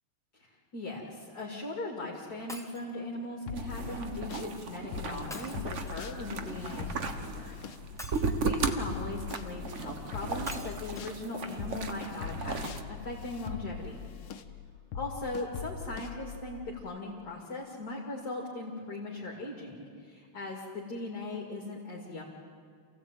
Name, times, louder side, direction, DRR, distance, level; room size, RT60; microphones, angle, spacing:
voice 1, 0.3-7.6 8.0-14.0 14.9-22.2, left 2 dB, 45° left, -3 dB, 3.0 m, -39 dB
Shatter, 2.5-2.9 5.3-6.2 8.0-8.8 10.5-11.0 11.7-11.8 12.0-12.1, left 1 dB, ahead, 1.4 m, -46 dB
sound 1, 3.5-4.5 4.9-11.2 11.6-16.8, left 7 dB, 75° left, 1.8 m, -41 dB
sound 2, 3.5-12.8, right 4 dB, 40° right, 1.3 m, -36 dB
28.0 x 16.5 x 9.1 m, 2.3 s
omnidirectional pair, 2.4 m